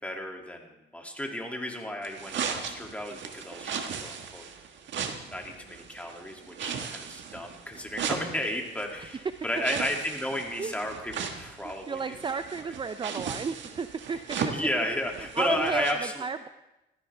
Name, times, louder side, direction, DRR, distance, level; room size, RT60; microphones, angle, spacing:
voice 1, 0.0-4.4 5.3-12.0 12.3-12.7 14.4-16.2, left 1 dB, 5° left, 1 dB, 2.6 m, -33 dB
sound 1, 2.0-15.9, right 6 dB, 70° right, 1.5 m, -37 dB
voice 2, 9.1-9.5 10.6-10.7 11.6-14.4 15.3-16.5, right 5 dB, 25° right, 11 dB, 0.5 m, -33 dB
17.5 x 14.0 x 3.5 m, 0.97 s
cardioid pair, 90°, 20 cm